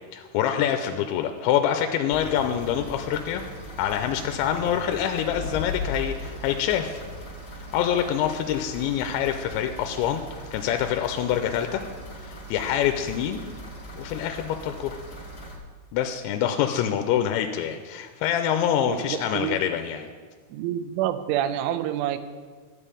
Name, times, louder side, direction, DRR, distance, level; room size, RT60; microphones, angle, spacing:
voice 1, 0.1-3.4 3.8-7.0 7.6-10.2 10.5-11.8 12.2-13.4 14.0-14.9 15.9-20.1, left 9 dB, 85° left, 6 dB, 2.8 m, -26 dB
sound 1, 2.1-15.5, right 1 dB, 40° left, 1.4 m, -41 dB
sound 2, 2.2-7.2, left 5 dB, 70° left, 2.0 m, -38 dB
voice 2, 20.5-22.2, right 11 dB, 90° right, 11 dB, 3.2 m, -27 dB
13.0 x 5.5 x 8.3 m, 1.5 s
omnidirectional pair, 5.4 m